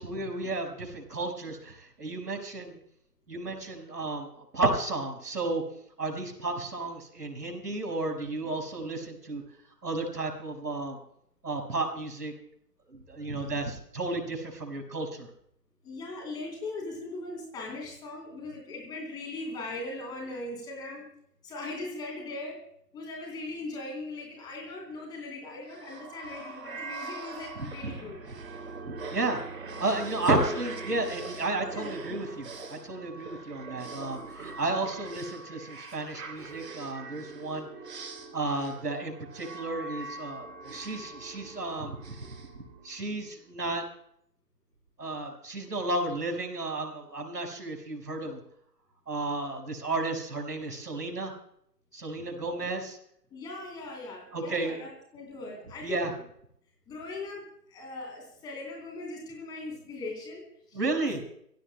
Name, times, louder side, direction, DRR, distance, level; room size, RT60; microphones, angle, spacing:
voice 1, 0.0-2.8 3.3-5.6 6.0-9.4 9.8-11.0 11.4-12.3 12.9-15.3 27.8-27.9 28.9-29.4 29.8-37.7 38.3-42.2 42.8-43.8 45.0-48.4 49.1-51.3 51.9-53.0 54.3-54.9 55.8-56.1 60.7-61.2, right 2 dB, 75° right, 4 dB, 5.3 m, -32 dB
voice 2, 15.8-21.1 21.4-22.6 22.9-28.2 31.6-32.2 53.3-56.1 56.9-57.4 57.7-61.1, left 2 dB, 10° left, 0 dB, 3.4 m, -39 dB
sound 1, 25.7-43.3, right 3 dB, 55° right, 3.1 m, -42 dB
28.5 x 16.5 x 2.2 m, 0.69 s
figure-of-eight pair, 155°, 49 cm